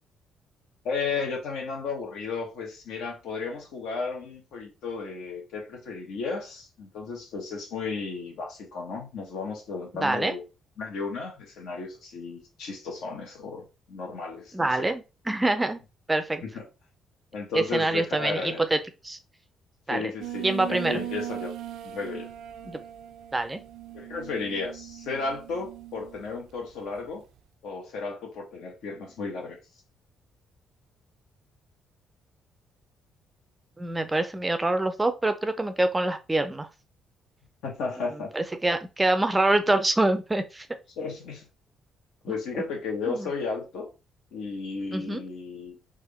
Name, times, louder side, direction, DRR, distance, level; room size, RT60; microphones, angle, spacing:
voice 1, 0.8-10.4 10.8-14.9 16.4-16.6 17.3-18.7 19.9-21.5 21.8-22.3 23.9-27.2 27.6-29.6 37.6-38.3 41.0-41.5 42.2-43.9 44.3-45.7, left 4 dB, 80° left, 1.2 m, -34 dB
voice 2, 9.9-10.3 14.5-15.8 16.1-16.4 17.5-18.8 19.0-19.2 19.9-20.1 20.4-21.0 22.6-22.8 23.3-23.6 33.8-36.7 38.3-40.7 42.3-42.4 43.1-43.3 44.9-45.2, right 2 dB, 15° right, 0.4 m, -25 dB
sound 1, 20.2-26.3, right 13 dB, 85° right, 0.4 m, -39 dB
3.5 x 2.5 x 3.4 m
cardioid pair, 125°, 0 cm